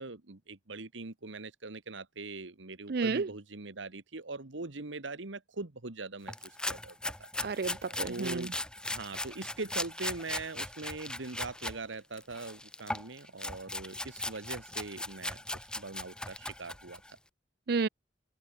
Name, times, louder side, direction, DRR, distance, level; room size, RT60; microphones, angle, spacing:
voice 1, 0.0-7.3 8.1-8.5 8.9-17.0, right 3 dB, 90° right, 1.6 m, -42 dB
voice 2, 2.9-3.3 7.4-8.5 17.7-17.9, right 4 dB, 55° right, 0.5 m, -31 dB
sound 1, 6.3-11.8 12.1-17.1, left 1 dB, 5° left, 1.0 m, -38 dB
head